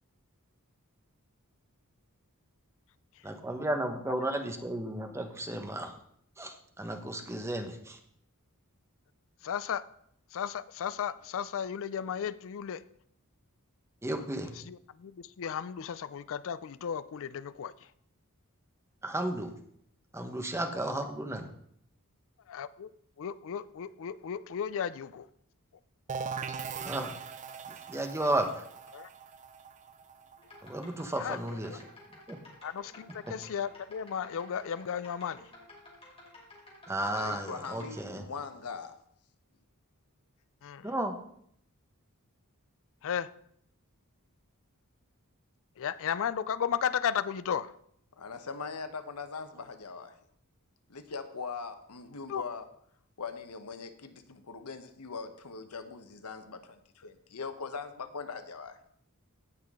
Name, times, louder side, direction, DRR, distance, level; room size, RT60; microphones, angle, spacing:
voice 1, 3.2-5.9 6.4-8.0 14.0-14.6 19.0-19.5 20.1-21.5 26.8-27.2 27.9-28.6 30.6-31.7 32.3-32.4 36.9-38.2 40.8-41.2, right 1 dB, 10° right, 5 dB, 1.1 m, -33 dB
voice 2, 9.4-9.8 10.3-12.8 14.5-17.7 22.5-22.9 23.2-25.3 28.9-29.1 31.2-31.4 31.7-31.8 32.6-35.5 40.6-40.9 43.0-43.3 45.8-47.7 52.3-52.4, left 8 dB, 65° left, 15 dB, 0.4 m, -34 dB
sound 1, 26.1-31.7, right 6 dB, 35° right, 0.4 m, -41 dB
sound 2, 30.4-38.0, left 1 dB, 25° left, 3.0 m, -53 dB
voice 3, 37.0-39.0 48.2-50.2 50.9-52.7 53.2-58.8, left 5 dB, 90° left, 9 dB, 1.0 m, -41 dB
17.0 x 5.7 x 3.7 m, 0.67 s
head